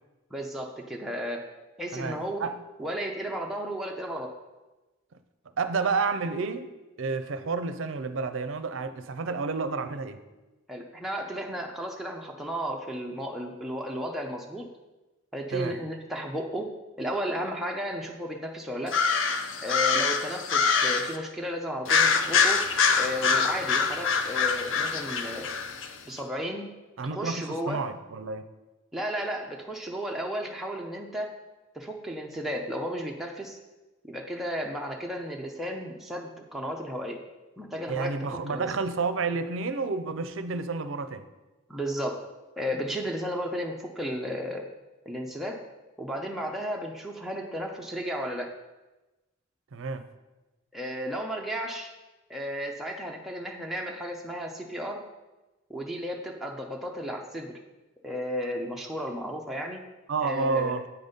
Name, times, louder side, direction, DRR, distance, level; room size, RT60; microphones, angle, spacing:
voice 1, 0.3-1.4 1.8-2.5 2.8-4.3 10.7-14.7 15.3-16.7 17.0-19.0 19.6-22.6 22.9-25.5 26.1-26.7 27.1-27.8 28.9-31.3 31.7-33.6 34.1-37.2 37.6-38.2 38.5-38.7 41.7-42.2 42.6-44.6 45.1-45.6 46.0-48.5 50.7-51.9 52.3-55.0 55.7-57.5 58.0-59.8 60.2-60.7, equal, ahead, -1 dB, 0.5 m, -33 dB
voice 2, 1.9-2.5 5.6-6.7 7.0-10.2 15.5-15.7 27.0-28.5 37.9-41.3 49.7-50.1 60.1-60.8, right 4 dB, 65° right, 11 dB, 0.5 m, -30 dB
sound 1, 18.9-21.2 21.9-25.9, left 5 dB, 60° left, 0.5 m, -25 dB
8.7 x 4.0 x 5.2 m, 1.1 s
head